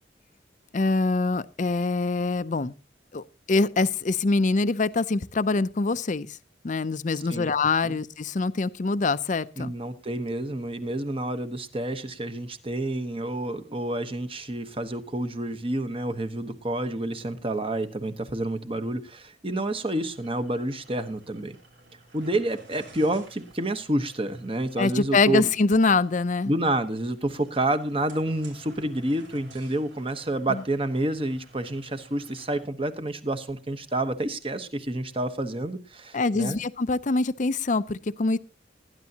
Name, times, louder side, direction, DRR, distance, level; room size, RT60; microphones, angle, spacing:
voice 1, 0.7-2.7 3.1-6.4 6.6-9.7 24.8-26.5 30.5-30.6 36.1-38.4, left 3 dB, 40° left, 0.5 m, -24 dB
voice 2, 9.6-21.6 22.1-25.5 26.5-36.6, right 1 dB, 30° right, 1.1 m, -29 dB
sound 1, 20.0-32.7, right 2 dB, 90° right, 3.4 m, -53 dB
19.0 x 10.5 x 2.9 m
head